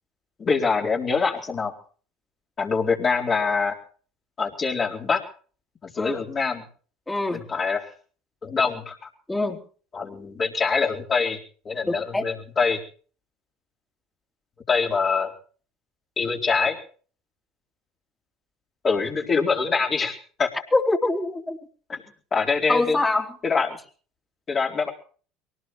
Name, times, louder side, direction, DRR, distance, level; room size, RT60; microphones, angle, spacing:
voice 1, 0.4-1.7 2.6-3.8 4.4-5.2 5.8-6.7 7.3-7.9 8.4-9.0 9.9-11.4 11.6-12.8 14.7-15.3 16.2-16.8 18.8-20.5 21.9-22.0 22.3-23.0 23.4-23.8 24.5-24.9, left 5 dB, 35° left, -3 dB, 4.2 m, -24 dB
voice 2, 7.1-7.4 9.3-9.6 11.9-12.2 20.7-21.6 22.7-23.3, left 2 dB, 15° left, 2 dB, 3.5 m, -24 dB
23.0 x 18.5 x 3.2 m, 0.42 s
hypercardioid pair, 75°, 0 cm